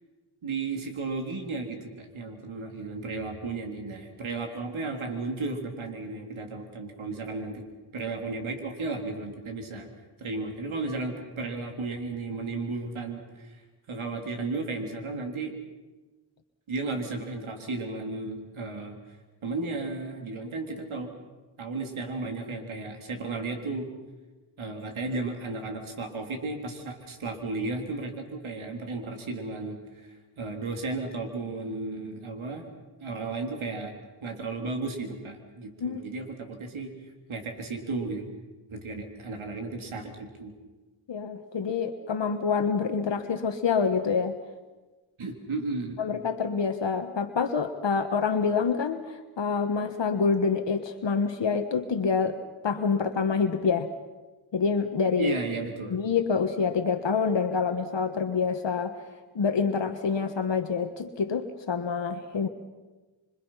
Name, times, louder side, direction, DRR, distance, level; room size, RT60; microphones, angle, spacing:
voice 1, 0.4-7.7 7.9-9.9 10.2-13.6 13.9-15.5 16.7-19.0 19.4-21.1 21.6-23.9 24.6-32.7 33.0-36.9 37.3-38.3 38.7-40.5 45.2-46.0 55.2-56.0, right 3 dB, 85° right, 3 dB, 3.7 m, -34 dB
voice 2, 41.1-44.3 46.0-49.0 49.4-52.4 52.6-53.9 54.5-55.3 55.9-59.0 59.3-62.5, left 5 dB, 65° left, 6 dB, 1.5 m, -26 dB
26.5 x 25.5 x 5.8 m, 1.2 s
cardioid pair, 65°, 47 cm